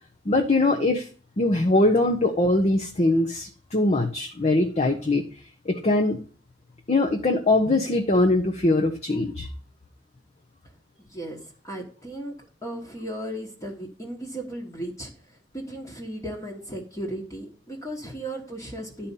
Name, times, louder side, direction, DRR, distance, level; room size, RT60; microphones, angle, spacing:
voice 1, 0.3-1.1 1.4-5.2 5.7-6.2 6.9-9.5, left 2 dB, 35° left, 3 dB, 0.8 m, -22 dB
voice 2, 11.0-12.3 12.6-19.1, right 1 dB, 20° left, -1 dB, 1.3 m, -36 dB
11.0 x 4.2 x 5.3 m, 0.41 s
head